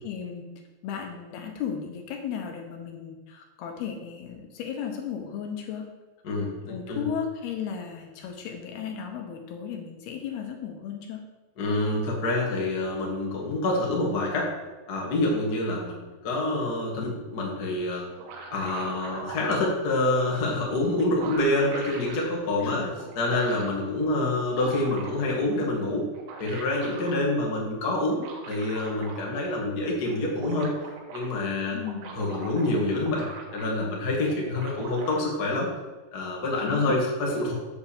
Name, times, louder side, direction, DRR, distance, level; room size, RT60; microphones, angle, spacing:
voice 1, 0.0-0.5 0.8-5.9 6.7-11.2 22.6-23.0 31.7-32.2 36.6-36.9, left 7 dB, 75° left, 3 dB, 2.8 m, -35 dB
voice 2, 6.2-7.1 11.6-14.5 14.9-18.1 18.5-22.9 23.1-26.1 26.4-30.7 31.1-31.8 32.1-35.7 36.1-37.5, left 2 dB, 50° left, -2 dB, 1.1 m, -27 dB
sound 1, 17.9-19.6 20.6-20.7 20.9-22.3 23.0-23.8 24.3-25.4 26.0-27.2 28.1-29.5 29.8-29.9 30.1-31.3 31.7-33.9 34.2-35.2, right 4 dB, 85° right, 3.6 m, -42 dB
7.8 x 5.2 x 7.0 m, 1.2 s
omnidirectional pair, 4.9 m